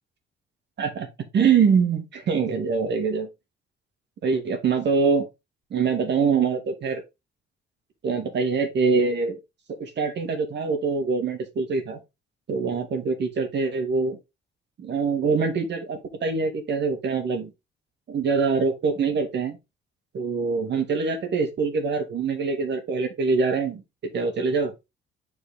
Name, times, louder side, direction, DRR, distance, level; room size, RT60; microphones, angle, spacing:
voice 1, 1.3-3.3 4.2-5.3 5.7-7.0 8.0-9.4 9.8-12.0 12.5-14.2 14.8-17.5 18.1-19.6 20.1-23.8 24.1-24.7, right 5 dB, 60° right, 2.3 m, -24 dB
8.0 x 4.6 x 3.7 m
cardioid pair, 90°, 20 cm